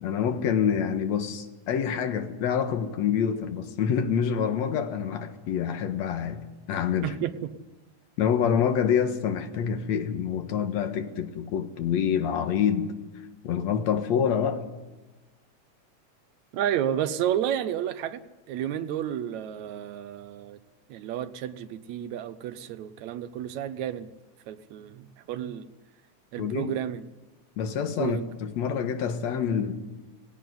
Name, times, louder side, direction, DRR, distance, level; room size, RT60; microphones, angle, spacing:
voice 1, 0.0-7.1 8.2-12.9 13.4-14.7 26.4-26.7 27.6-29.7, left 7 dB, 70° left, 6 dB, 2.7 m, -27 dB
voice 2, 7.0-7.5 16.5-18.2 18.5-20.6 20.9-24.1 24.5-25.7 26.3-27.0 28.0-28.3, right 10 dB, 75° right, 11 dB, 2.2 m, -31 dB
17.5 x 17.5 x 9.5 m, 1.2 s
omnidirectional pair, 3.3 m